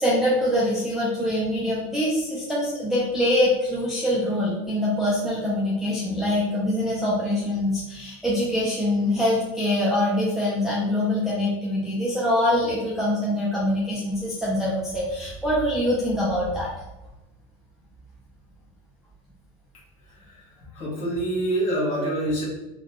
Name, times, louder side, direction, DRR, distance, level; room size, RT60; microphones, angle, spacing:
voice 1, 0.0-16.7, left 1 dB, ahead, -8 dB, 0.5 m, -24 dB
voice 2, 20.7-22.5, right 1 dB, 40° left, -5 dB, 1.3 m, -25 dB
3.8 x 2.3 x 3.0 m, 1.0 s
cardioid pair, 160°, 18 cm